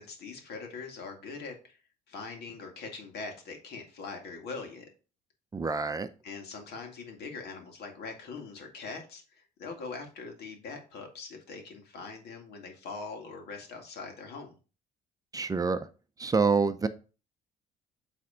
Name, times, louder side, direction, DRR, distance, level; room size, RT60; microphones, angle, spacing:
voice 1, 0.0-1.8 2.1-4.9 6.2-14.6, left 4 dB, 70° left, 2.1 m, -42 dB
voice 2, 5.5-6.1 15.3-15.9 16.2-16.9, right 4 dB, 20° right, 0.6 m, -27 dB
8.3 x 3.5 x 4.9 m
cardioid pair, 110°, 17 cm